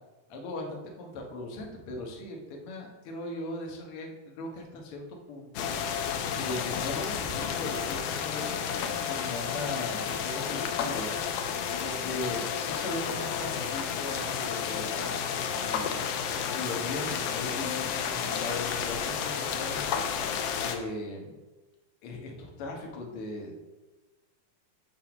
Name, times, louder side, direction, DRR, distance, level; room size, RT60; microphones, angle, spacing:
voice 1, 0.3-5.7 6.3-8.8 9.1-20.3 20.6-21.4 22.0-23.6, left 2 dB, 60° left, 0 dB, 1.6 m, -39 dB
sound 1, 5.6-20.8, left 7 dB, 80° left, 2.1 m, -31 dB
7.6 x 2.7 x 5.8 m, 1.1 s
omnidirectional pair, 3.7 m